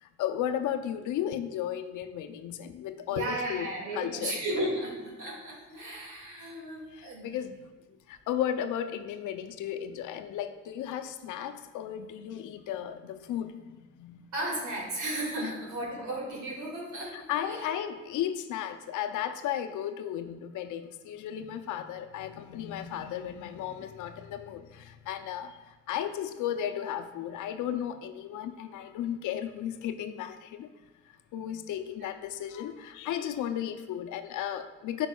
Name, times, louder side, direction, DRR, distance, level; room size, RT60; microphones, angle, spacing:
voice 1, 0.0-3.7 3.9-4.4 6.9-7.6 8.1-14.2 15.4-15.5 17.1-25.6 25.9-30.7 31.3-35.1, left 10 dB, 80° left, 8 dB, 0.5 m, -34 dB
voice 2, 3.1-7.4 14.3-17.7, right 1 dB, 80° right, -3 dB, 2.1 m, -35 dB
9.0 x 5.4 x 2.3 m, 1.2 s
cardioid pair, 90°, 30 cm